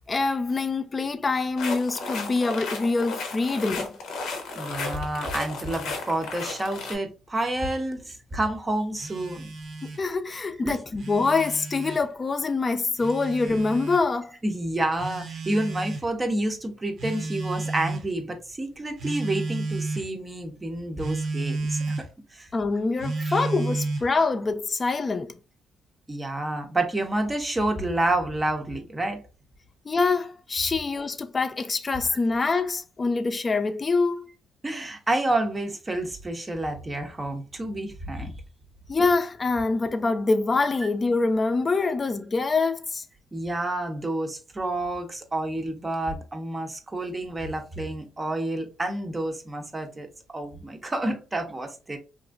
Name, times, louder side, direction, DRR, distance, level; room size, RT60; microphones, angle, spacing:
voice 1, 0.1-3.9 10.0-14.3 22.5-25.3 29.9-34.3 38.9-43.0, left 3 dB, 30° left, 0.4 m, -25 dB
sound 1, 1.6-7.0, left 3 dB, 80° left, 0.7 m, -34 dB
voice 2, 4.6-9.5 10.6-10.8 14.4-22.0 22.3-22.5 23.2-23.5 26.1-29.2 34.6-38.3 43.3-50.1 50.3-52.0, right 1 dB, 25° right, 0.6 m, -29 dB
Telephone, 9.0-10.1 10.8-12.0 13.0-14.0 15.0-16.1 17.0-18.1 19.0-20.1 21.0-22.1 23.0-24.1, right 3 dB, 60° right, 0.6 m, -32 dB
2.9 x 2.5 x 2.3 m
cardioid pair, 90°, 0 cm